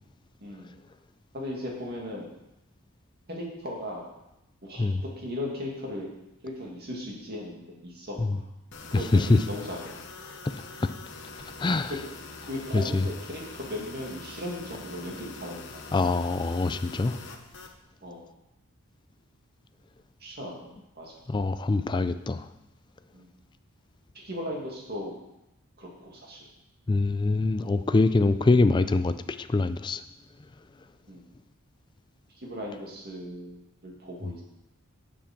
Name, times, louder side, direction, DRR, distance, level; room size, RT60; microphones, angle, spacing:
voice 1, 0.4-0.7 1.3-2.3 3.3-4.1 4.6-6.1 6.4-8.2 8.9-9.9 11.9-12.0 12.5-15.9 18.0-18.3 20.2-21.2 23.1-23.3 24.1-25.2 25.8-26.5 31.1-31.2 32.4-34.4, left 1 dB, 45° right, -2 dB, 2.3 m, -37 dB
sound 1, 8.7-17.7, left 3 dB, 55° left, 1.0 m, -44 dB
voice 2, 8.9-9.4 10.8-10.9 11.6-11.9 12.7-13.0 15.9-17.2 21.3-22.5 26.9-30.0, left 3 dB, 20° left, 11 dB, 0.3 m, -24 dB
7.3 x 7.3 x 6.0 m, 0.88 s
head